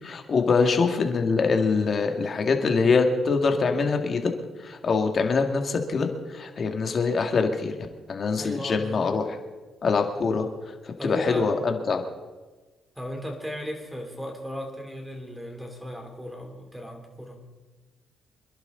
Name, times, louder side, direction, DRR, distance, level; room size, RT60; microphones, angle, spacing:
voice 1, 0.0-4.3 4.6-7.7 8.1-9.3 9.8-10.5 11.0-12.0, left 4 dB, 45° left, 4 dB, 2.2 m, -24 dB
voice 2, 8.4-9.2 11.0-11.5 13.0-17.4, equal, 5° right, 3 dB, 3.5 m, -36 dB
26.5 x 11.5 x 4.0 m, 1.2 s
cardioid pair, 90°, 0 cm